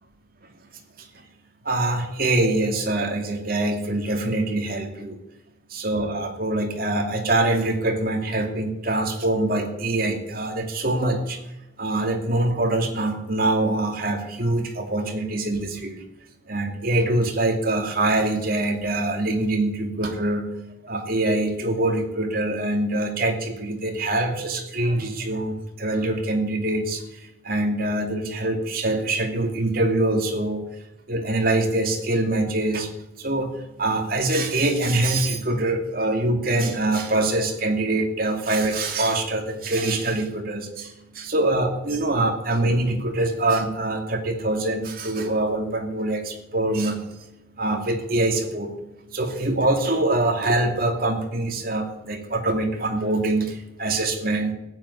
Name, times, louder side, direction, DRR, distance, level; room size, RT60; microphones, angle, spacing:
voice 1, 1.6-5.2 5.7-11.4 11.8-16.0 16.5-20.5 20.8-27.0 27.4-30.6 31.1-32.9 33.2-33.5 33.8-47.0 47.6-48.7 49.1-54.5, right 2 dB, 50° right, 3 dB, 2.6 m, -24 dB
15.0 x 8.5 x 9.9 m, 0.92 s
head